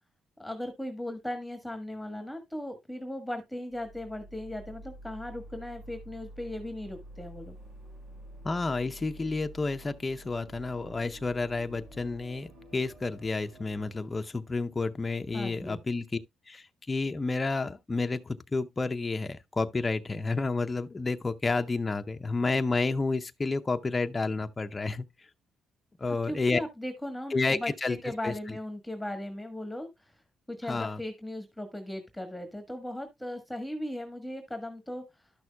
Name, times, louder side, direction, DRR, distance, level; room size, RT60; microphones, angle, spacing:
voice 1, 0.4-7.6 15.3-15.8 26.3-30.2 30.5-35.0, left 1 dB, 5° left, 1.5 m, -37 dB
sound 1, 3.7-13.9, right 1 dB, 90° right, 6.4 m, -49 dB
voice 2, 8.4-16.1 16.5-25.1 26.0-26.6 27.3-28.0 28.2-28.6 30.7-31.0, left 3 dB, 25° left, 0.6 m, -30 dB
12.0 x 6.2 x 2.3 m
cardioid pair, 90°, 0 cm